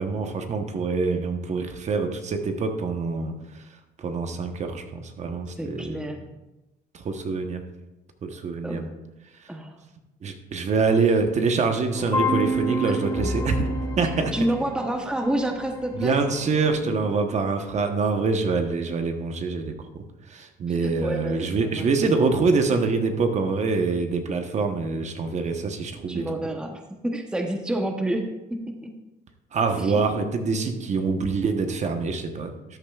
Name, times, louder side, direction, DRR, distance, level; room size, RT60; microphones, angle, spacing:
voice 1, 0.0-3.7 4.0-6.1 6.9-7.6 8.2-8.9 9.4-9.5 10.2-14.3 15.9-26.3 29.5-32.8, right 4 dB, 45° right, 6 dB, 1.0 m, -25 dB
voice 2, 5.6-6.3 8.6-8.9 9.5-9.7 14.3-16.2 20.8-21.4 21.7-21.9 26.1-28.9 29.8-30.3, right 1 dB, 5° right, 4 dB, 0.9 m, -29 dB
sound 1, 11.9-16.9, equal, 20° left, 1.6 m, -29 dB
13.5 x 8.5 x 2.4 m, 1.0 s
cardioid pair, 110°, 17 cm